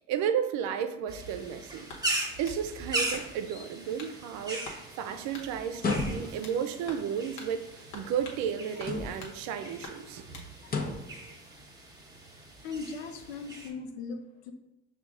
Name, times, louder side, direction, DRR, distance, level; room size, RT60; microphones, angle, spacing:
voice 1, 0.1-1.9 2.4-10.4, right 8 dB, 65° right, 9 dB, 0.6 m, -33 dB
sound 1, 1.1-13.7, right 2 dB, 10° right, 1.0 m, -39 dB
sound 2, 1.9-2.6 3.1-3.5 4.0-4.2 4.6-4.8 5.3-5.5 5.9-6.6 6.9-7.1 7.4-7.5 7.9-8.4 8.8-9.4 9.8-10.5, left 2 dB, 70° left, 1.1 m, -45 dB
sound 3, 5.7-6.6 8.8-9.4 10.6-11.2, left 4 dB, 30° left, 0.8 m, -32 dB
voice 2, 12.6-14.5, left 4 dB, 85° left, 6 dB, 0.6 m, -38 dB
5.8 x 2.4 x 3.7 m, 0.90 s
hypercardioid pair, 70°, 31 cm